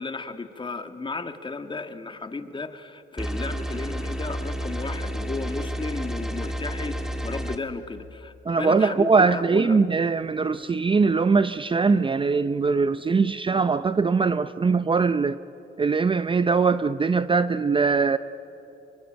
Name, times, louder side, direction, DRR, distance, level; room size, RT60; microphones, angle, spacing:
voice 1, 0.0-9.8, left 3 dB, 25° left, 8 dB, 1.7 m, -34 dB
sound 1, 3.2-7.6, equal, ahead, 2.0 m, -31 dB
voice 2, 8.5-15.4 15.8-18.2, right 4 dB, 25° right, 13 dB, 0.6 m, -21 dB
27.0 x 24.0 x 9.0 m, 3.0 s
cardioid pair, 90°, 20 cm